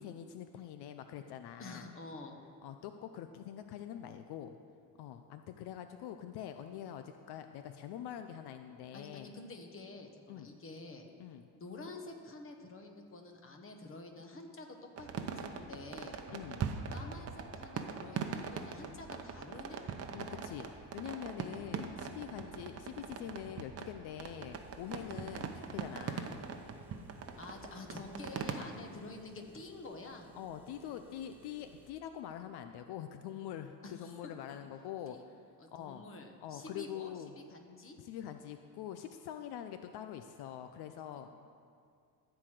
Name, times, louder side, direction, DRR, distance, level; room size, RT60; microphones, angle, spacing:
voice 1, 0.0-1.9 2.6-4.6 5.0-9.3 10.3-10.5 11.2-11.4 16.3-16.6 20.1-26.3 30.3-35.4 35.7-36.0 36.4-37.4 38.0-41.3, left 10 dB, 80° left, 8 dB, 0.6 m, -44 dB
voice 2, 1.6-2.4 8.9-11.1 11.5-15.1 15.3-16.2 16.9-19.8 22.3-22.6 27.3-30.3 33.8-34.2 35.1-35.2 35.6-37.1 37.5-38.0, left 2 dB, 35° left, 3 dB, 1.3 m, -48 dB
sound 1, 15.0-28.7, right 6 dB, 40° right, 0.8 m, -42 dB
Engine, 24.5-31.9, right 1 dB, 5° right, 1.0 m, -60 dB
14.0 x 4.8 x 7.7 m, 2.3 s
cardioid pair, 135°, 39 cm